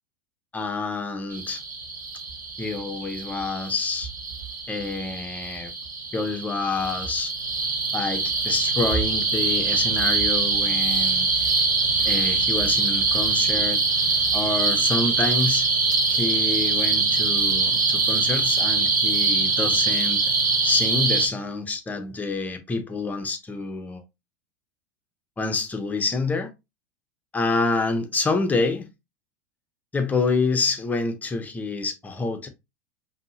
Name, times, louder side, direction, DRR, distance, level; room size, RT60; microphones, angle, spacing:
voice 1, 0.5-1.6 2.6-4.1 4.7-5.7 6.1-7.3 7.9-11.3 12.0-13.8 14.3-15.7 16.1-20.2 20.6-24.0 25.4-26.5 27.3-28.9 29.9-32.5, left 3 dB, 15° left, 0.9 m, -27 dB
sound 1, 1.3-21.3, right 4 dB, 85° right, 1.1 m, -23 dB
5.1 x 2.8 x 2.8 m
hypercardioid pair, 85°, 10 cm